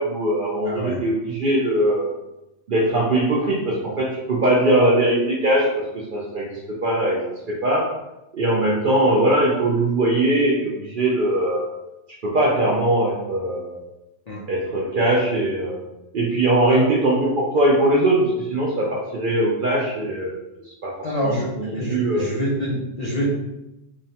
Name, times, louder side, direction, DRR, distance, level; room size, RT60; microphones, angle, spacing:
voice 1, 0.0-2.1 2.7-5.8 6.1-6.5 6.8-7.2 7.5-7.9 8.3-11.7 12.2-13.8 14.5-15.8 16.1-20.3 20.8-22.3, right 1 dB, 60° right, -4 dB, 0.5 m, -21 dB
voice 2, 0.7-1.0 14.3-14.4 16.7-16.8 21.0-21.5 21.7-23.3, equal, 50° left, -7 dB, 0.5 m, -26 dB
3.1 x 2.1 x 2.7 m, 0.93 s
omnidirectional pair, 1.3 m